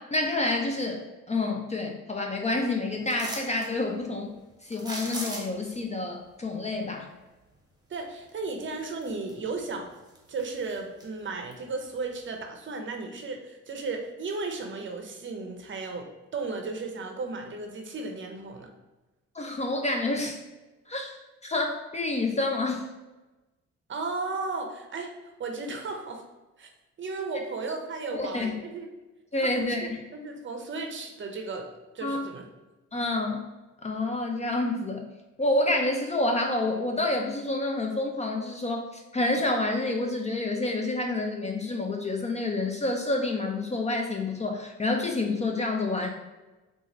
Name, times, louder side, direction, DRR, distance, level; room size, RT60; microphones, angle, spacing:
voice 1, 0.0-4.4 4.6-7.1 19.3-20.4 20.9-22.9 28.1-28.6 29.3-30.0 32.0-32.2 32.9-33.5 33.8-35.1 35.4-46.1, left 2 dB, 25° left, 2 dB, 0.4 m, -28 dB
sound 1, 3.1-3.7 4.7-5.7 8.3-8.4 8.9-9.6 9.9-11.1 11.5-11.6, right 1 dB, 15° right, 0.9 m, -38 dB
voice 2, 7.9-9.9 10.3-18.7 23.9-25.1 25.4-26.2 26.6-26.7 27.0-28.9 29.4-31.7 31.9-32.4, right 3 dB, 40° right, 3 dB, 0.6 m, -35 dB
3.9 x 2.4 x 3.0 m, 1.1 s
cardioid pair, 90°, 30 cm